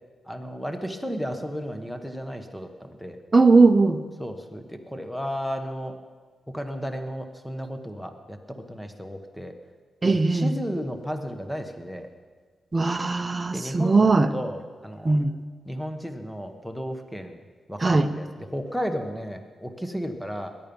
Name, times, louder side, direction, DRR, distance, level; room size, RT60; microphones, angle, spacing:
voice 1, 0.3-3.2 4.2-5.9 6.5-9.5 10.0-12.1 13.5-15.2 15.7-17.4 17.7-20.5, equal, 5° left, 6 dB, 1.0 m, -34 dB
voice 2, 3.3-4.0 10.0-10.5 12.7-14.3 15.0-15.3 17.8-18.1, right 3 dB, 20° right, 8 dB, 0.7 m, -19 dB
21.0 x 10.5 x 5.3 m, 1.5 s
wide cardioid pair, 145°, 0 cm